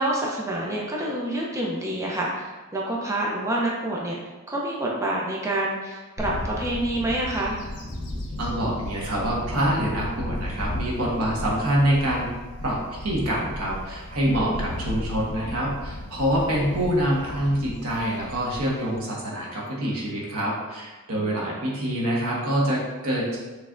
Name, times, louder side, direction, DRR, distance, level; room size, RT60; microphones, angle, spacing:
voice 1, 0.0-4.2 4.5-7.6 14.3-14.6 21.2-21.6, right 1 dB, 15° right, -3 dB, 0.5 m, -27 dB
Bird / Wind, 6.2-19.0, left 1 dB, 55° left, 1.4 m, -35 dB
voice 2, 8.4-12.3 12.6-23.4, equal, 80° right, -4 dB, 1.2 m, -26 dB
6.2 x 3.3 x 2.5 m, 1.2 s
head